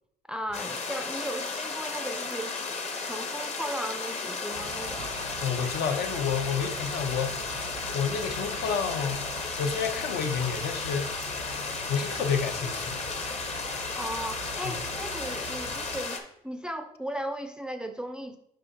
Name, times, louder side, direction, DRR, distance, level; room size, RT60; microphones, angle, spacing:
voice 1, 0.3-5.1 13.9-18.4, right 1 dB, 5° right, 6 dB, 0.4 m, -36 dB
sound 1, 0.5-16.2, left 4 dB, 40° left, 1.0 m, -34 dB
sound 2, 4.5-16.0, right 6 dB, 85° right, 0.9 m, -44 dB
voice 2, 5.4-7.6 7.9-9.3 9.6-11.1 11.9-13.1 14.6-14.7, left 6 dB, 70° left, 5 dB, 0.8 m, -30 dB
7.7 x 5.0 x 2.8 m, 0.75 s
cardioid pair, 110°, 17 cm